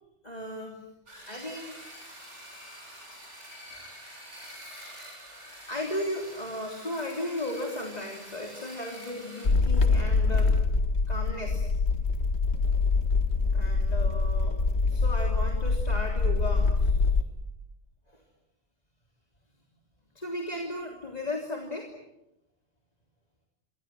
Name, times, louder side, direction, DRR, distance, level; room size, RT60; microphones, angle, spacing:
voice 1, 0.2-0.9 1.3-1.8 3.7-4.0 4.4-10.6 11.1-11.7 13.5-14.6 14.9-17.0 18.1-18.2 20.1-21.9, left 1 dB, 35° left, 1 dB, 3.5 m, -36 dB
sound 1, 1.1-9.5, equal, 80° right, 8.1 m, -46 dB
sound 2, 9.4-17.2, left 4 dB, 65° left, 2.0 m, -24 dB
28.0 x 26.0 x 7.7 m, 0.89 s
omnidirectional pair, 1.2 m